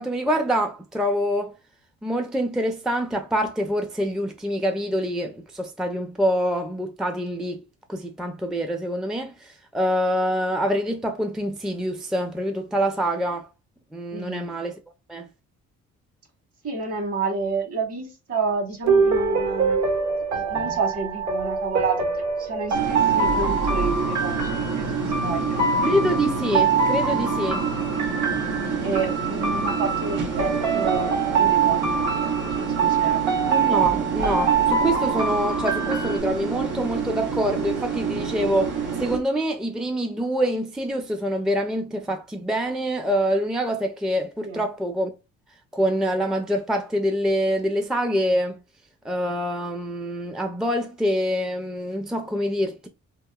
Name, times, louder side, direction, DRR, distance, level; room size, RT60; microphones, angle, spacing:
voice 1, 0.0-1.5 2.0-7.6 7.9-13.5 13.9-14.7 15.1-15.3 20.5-20.8 25.8-27.6 33.5-45.1 45.7-48.6 49.0-52.9, equal, ahead, 0.4 m, -25 dB
voice 2, 14.1-14.5 16.6-19.8 20.3-22.1 22.4-25.7 27.4-27.6 28.8-32.3 32.5-33.3 44.4-44.6, right 4 dB, 50° right, 1.5 m, -30 dB
sound 1, 18.8-36.2, right 5 dB, 70° right, 1.4 m, -24 dB
sound 2, 22.7-39.2, right 5 dB, 85° right, 0.9 m, -28 dB
2.9 x 2.7 x 2.2 m
cardioid pair, 90°, 30 cm